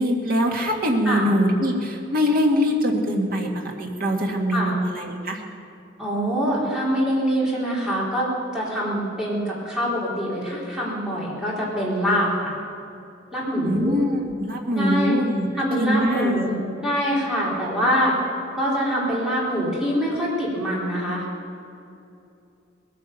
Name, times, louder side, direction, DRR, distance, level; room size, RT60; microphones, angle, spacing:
voice 1, 0.0-5.4 13.6-15.5 15.8-16.5, equal, 50° right, 1 dB, 2.0 m, -23 dB
voice 2, 6.0-12.5 13.3-14.0 14.8-15.2 15.6-16.6 16.8-18.2 18.5-21.2, equal, 5° right, -7 dB, 4.2 m, -24 dB
20.0 x 9.5 x 7.0 m, 2.7 s
head